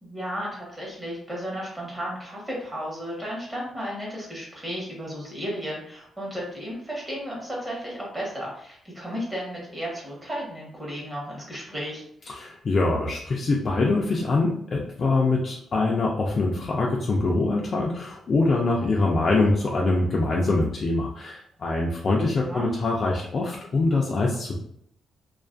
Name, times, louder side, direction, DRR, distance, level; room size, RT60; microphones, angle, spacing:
voice 1, 0.0-12.0 22.4-22.7, equal, 15° right, -4 dB, 0.9 m, -34 dB
voice 2, 12.3-24.6, left 3 dB, 40° left, -2 dB, 0.3 m, -24 dB
2.4 x 2.3 x 2.4 m, 0.71 s
cardioid pair, 140°, 0 cm